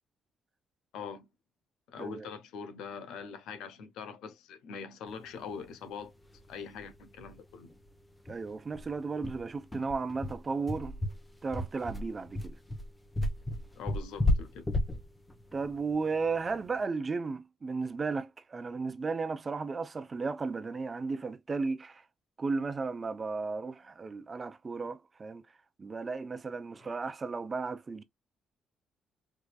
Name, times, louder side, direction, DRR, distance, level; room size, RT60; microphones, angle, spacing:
voice 1, 0.9-1.3 1.9-6.1 6.5-7.7 13.7-14.7, left 6 dB, 90° left, 0.7 m, -43 dB
sound 1, 6.3-6.4 6.7-6.8 7.2-7.3 7.7-7.8 8.3-16.7, left 1 dB, 15° left, 0.8 m, -33 dB
voice 2, 8.3-11.0 11.4-12.6 15.5-22.1 22.4-25.4 25.8-28.0, right 4 dB, 35° right, 0.6 m, -34 dB
4.8 x 2.5 x 2.3 m
cardioid pair, 90°, 0 cm